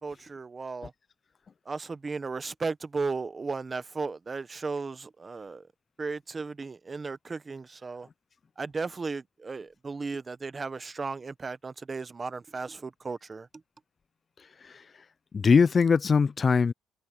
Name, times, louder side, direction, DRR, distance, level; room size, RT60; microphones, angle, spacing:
voice 1, 0.0-0.9 1.6-5.7 6.0-8.1 8.6-13.5, right 4 dB, 30° right, 1.1 m, -35 dB
voice 2, 14.4-14.9 15.3-16.7, left 5 dB, 35° left, 0.6 m, -22 dB
cardioid pair, 95°, 0 cm